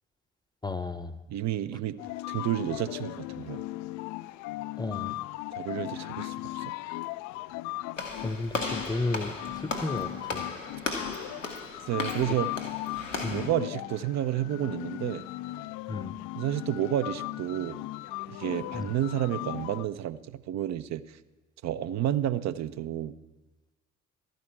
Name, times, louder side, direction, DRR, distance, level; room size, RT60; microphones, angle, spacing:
voice 1, 0.6-1.2 4.8-5.1 8.2-10.4 13.2-13.5 15.9-16.1 18.7-18.9, left 2 dB, 10° left, 14 dB, 0.7 m, -33 dB
voice 2, 1.3-2.0 2.3-3.6 5.5-6.7 11.9-12.5 13.3-15.3 16.4-17.8 18.3-20.2 20.5-21.2 21.6-23.1, right 11 dB, 45° right, 13 dB, 0.7 m, -30 dB
sound 1, 2.0-19.8, left 17 dB, 50° left, 0.4 m, -37 dB
Walk footsteps / Slam, 8.0-13.5, left 3 dB, 90° left, 1.0 m, -36 dB
13.0 x 5.3 x 8.6 m, 1.1 s
figure-of-eight pair, 45°, 37 cm